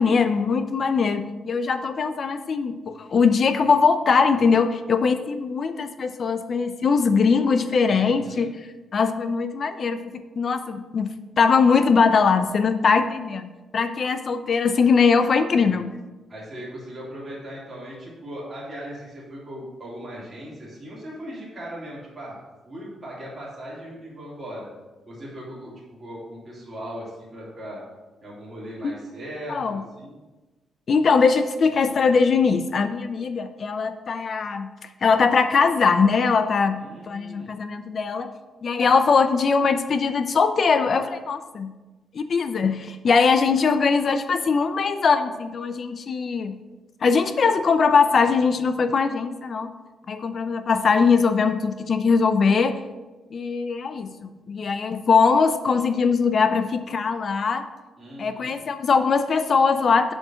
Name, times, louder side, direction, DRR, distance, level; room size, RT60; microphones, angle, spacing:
voice 1, 0.0-8.5 8.9-10.0 10.4-11.1 11.4-15.9 29.5-29.8 30.9-34.7 35.0-38.3 38.6-41.7 42.1-46.6 47.0-49.7 50.1-52.8 53.3-54.1 54.5-57.6 58.2-60.1, left 5 dB, 40° left, 10 dB, 0.5 m, -21 dB
voice 2, 7.9-8.5 16.3-22.4 22.6-24.7 25.0-25.7 26.0-27.8 28.2-30.1 36.8-37.5 58.0-58.5, equal, 20° right, -7 dB, 3.3 m, -38 dB
7.5 x 5.2 x 6.2 m, 1.2 s
cardioid pair, 145°, 0 cm